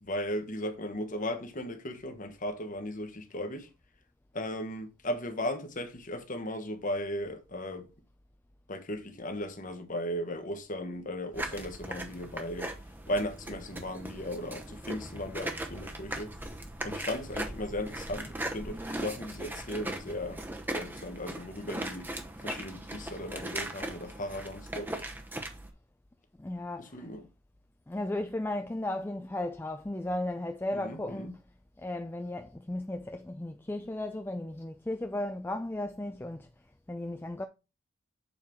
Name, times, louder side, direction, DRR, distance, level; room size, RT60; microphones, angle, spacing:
voice 1, 0.0-3.7 4.3-7.9 8.7-12.7 13.1-16.4 16.8-20.4 20.7-22.1 22.4-25.1 26.8-27.3 30.7-31.3, left 1 dB, 35° left, 1.1 m, -36 dB
sound 1, 11.3-25.7, right 1 dB, 10° right, 0.8 m, -39 dB
voice 2, 26.4-27.1 27.9-31.4 31.8-36.5 36.9-37.4, left 1 dB, 10° left, 0.3 m, -35 dB
7.1 x 4.5 x 3.6 m
head